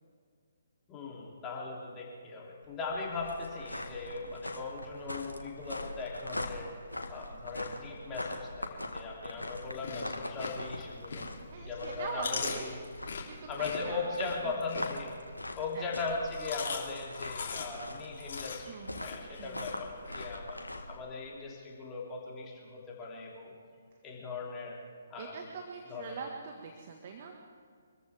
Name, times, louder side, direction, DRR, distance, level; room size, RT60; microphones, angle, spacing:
voice 1, 0.9-6.7 7.1-11.3 11.7-12.8 13.5-15.1 15.6-20.6 20.9-23.5 24.0-24.8 25.1-25.3 25.9-26.2, left 3 dB, 20° left, -3 dB, 3.0 m, -39 dB
sound 1, 2.6-21.0, left 1 dB, 85° left, 1.8 m, -42 dB
Chewing mastication, 9.6-11.5 11.9-15.4 16.1-20.2, left 5 dB, 55° left, 3.2 m, -41 dB
voice 2, 11.5-12.7 13.2-14.1 14.4-14.6 15.7-15.9 18.7-19.7 25.2-27.3, right 5 dB, 40° right, 2 dB, 1.6 m, -43 dB
26.0 x 14.5 x 3.5 m, 2.1 s
figure-of-eight pair, 135°, 0 cm